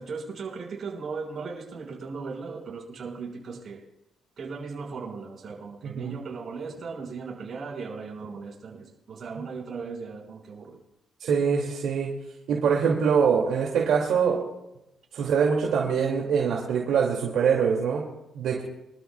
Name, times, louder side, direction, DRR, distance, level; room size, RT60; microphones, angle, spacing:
voice 1, 0.0-3.8 4.4-10.8, right 4 dB, 50° right, -1 dB, 5.6 m, -37 dB
voice 2, 11.2-12.1 12.5-14.4 15.1-18.0 18.3-18.6, right 6 dB, 75° right, -2 dB, 2.5 m, -24 dB
25.5 x 13.0 x 2.4 m, 0.90 s
cardioid pair, 90°, 0 cm